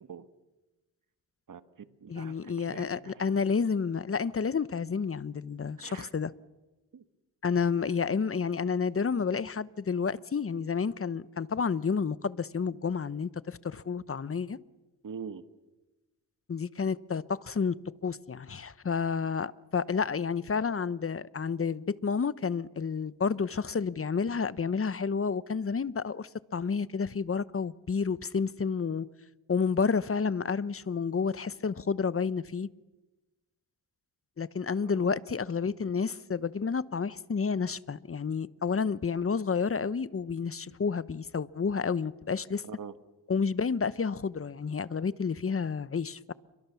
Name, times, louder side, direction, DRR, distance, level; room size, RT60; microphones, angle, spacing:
voice 1, 1.5-3.2 5.8-6.1 6.9-7.0 15.0-15.4 34.8-35.1 42.6-42.9, right 6 dB, 55° right, 1.8 m, -44 dB
voice 2, 2.1-6.3 7.4-14.6 16.5-17.7 18.0-29.1 29.5-32.7 34.4-42.6 43.3-46.3, left 5 dB, 35° left, 1.0 m, -30 dB
29.5 x 23.0 x 7.1 m
cardioid pair, 70°, 39 cm